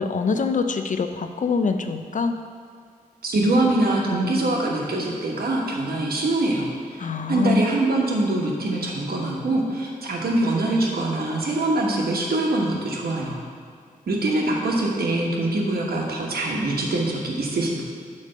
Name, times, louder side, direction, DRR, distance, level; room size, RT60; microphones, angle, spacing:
voice 1, 0.0-2.3 7.0-7.6, left 4 dB, 55° left, 7 dB, 0.5 m, -24 dB
voice 2, 3.2-13.4 14.1-17.8, right 2 dB, 85° right, -2 dB, 1.2 m, -24 dB
8.4 x 3.3 x 6.6 m, 2.2 s
wide cardioid pair, 80°, 15 cm